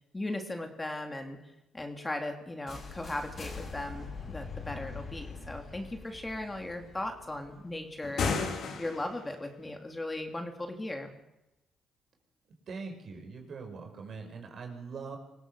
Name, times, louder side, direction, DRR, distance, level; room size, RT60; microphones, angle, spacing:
voice 1, 0.1-1.4 1.7-11.1, left 1 dB, 15° left, 4 dB, 2.9 m, -37 dB
sound 1, 2.7-8.5, left 4 dB, 45° left, 6.3 m, -44 dB
sound 2, 8.0-9.3, left 5 dB, 65° left, 3.9 m, -32 dB
voice 2, 12.7-15.2, right 4 dB, 55° right, 3 dB, 6.1 m, -42 dB
25.0 x 16.5 x 6.9 m, 0.93 s
cardioid pair, 90°, 0 cm